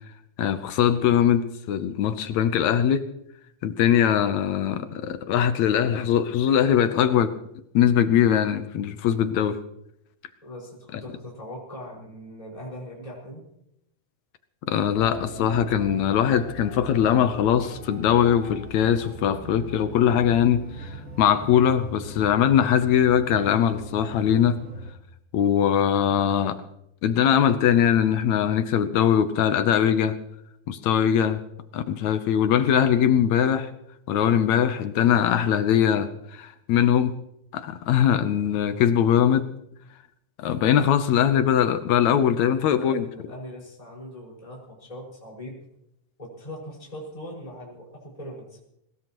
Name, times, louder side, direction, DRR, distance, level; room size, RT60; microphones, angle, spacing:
voice 1, 0.4-3.0 3.6-7.4 7.7-9.6 14.7-24.6 25.3-26.6 27.0-30.2 30.7-31.4 31.7-33.7 34.1-37.1 37.5-39.5 40.4-43.1, left 9 dB, 75° left, 10 dB, 2.1 m, -21 dB
voice 2, 10.4-13.4 42.5-45.6 46.2-48.6, equal, 10° left, -4 dB, 5.6 m, -40 dB
The Ritual, 14.9-24.9, right 1 dB, 30° right, 2.9 m, -39 dB
21.5 x 20.5 x 3.1 m, 0.80 s
omnidirectional pair, 3.5 m